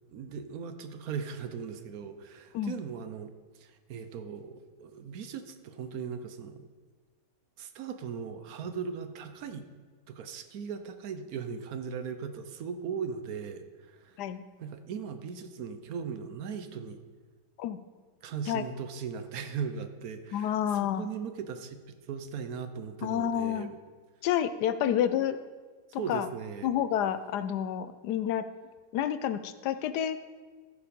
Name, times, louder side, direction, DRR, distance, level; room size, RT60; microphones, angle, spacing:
voice 1, 0.1-6.7 7.6-9.7 10.1-14.2 14.6-17.0 18.2-23.7 24.8-25.2 26.0-26.7, right 6 dB, 70° right, 9 dB, 1.1 m, -38 dB
voice 2, 20.3-21.0 23.0-23.7 24.2-25.4 25.9-26.3 26.6-28.5 28.9-30.2, left 10 dB, 85° left, 11 dB, 1.2 m, -29 dB
14.5 x 5.1 x 5.2 m, 1.4 s
omnidirectional pair, 1.7 m